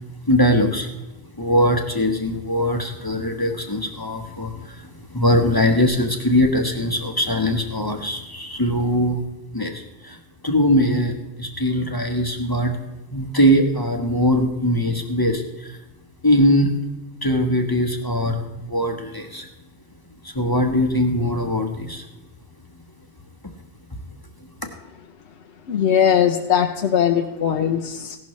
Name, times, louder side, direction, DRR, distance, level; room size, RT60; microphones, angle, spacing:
voice 1, 0.3-0.9 1.4-4.8 5.1-9.2 9.5-10.2 10.4-12.8 13.1-15.4 16.2-16.7 17.2-19.4 20.3-22.0, equal, 20° left, 3 dB, 1.1 m, -21 dB
voice 2, 25.7-28.2, left 8 dB, 65° left, 2 dB, 1.0 m, -20 dB
16.0 x 11.5 x 3.1 m, 1.0 s
omnidirectional pair, 1.3 m